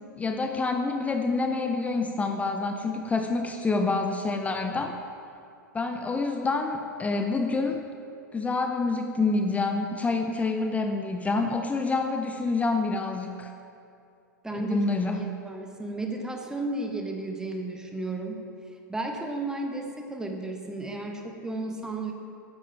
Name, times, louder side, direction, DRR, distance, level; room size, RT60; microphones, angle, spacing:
voice 1, 0.2-5.0 5.7-7.8 8.3-13.5 14.5-15.2, left 3 dB, 15° left, 5 dB, 0.5 m, -27 dB
voice 2, 14.4-14.8 15.1-18.4 18.9-22.1, right 2 dB, 5° right, 3 dB, 1.1 m, -33 dB
10.5 x 7.3 x 4.6 m, 2.5 s
hypercardioid pair, 105°, 10 cm